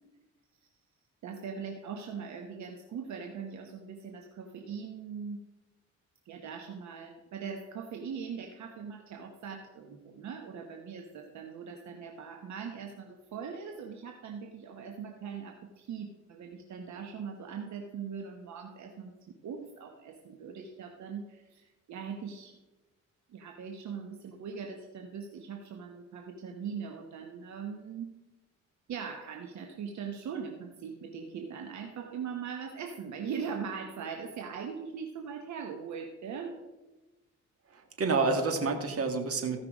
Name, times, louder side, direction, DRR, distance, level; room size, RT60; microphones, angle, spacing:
voice 1, 1.2-5.4 6.2-19.1 19.4-22.6 23.3-28.1 28.9-36.6, right 6 dB, 70° right, 3 dB, 1.2 m, -41 dB
voice 2, 37.7-39.6, right 3 dB, 50° right, 5 dB, 1.9 m, -29 dB
15.0 x 5.6 x 5.1 m, 1.1 s
cardioid pair, 90°, 30 cm